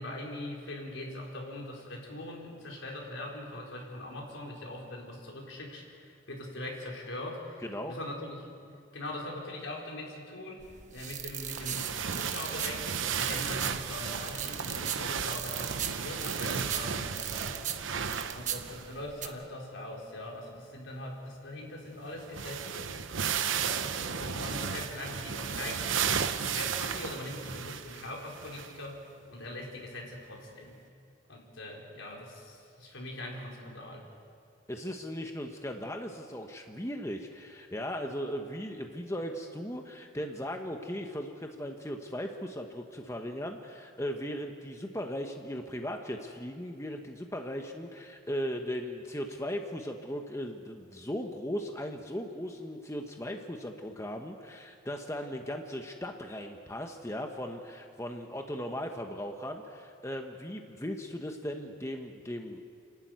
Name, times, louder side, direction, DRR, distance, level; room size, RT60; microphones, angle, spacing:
voice 1, 0.0-8.5 8.9-17.9 18.3-23.2 23.6-26.1 26.3-29.0 29.3-30.8 31.3-34.1, left 1 dB, 80° left, -1 dB, 4.5 m, -41 dB
voice 2, 7.6-7.9 34.7-62.6, equal, 15° left, 3 dB, 1.1 m, -37 dB
sound 1, 10.6-19.3, right 9 dB, 40° right, 1.1 m, -39 dB
sound 2, 11.5-19.0 19.2-19.3 21.9-22.0 22.2-28.8 29.4-29.5 30.7-30.8, right 7 dB, 80° right, 0.9 m, -34 dB
29.5 x 12.0 x 9.3 m, 2.4 s
head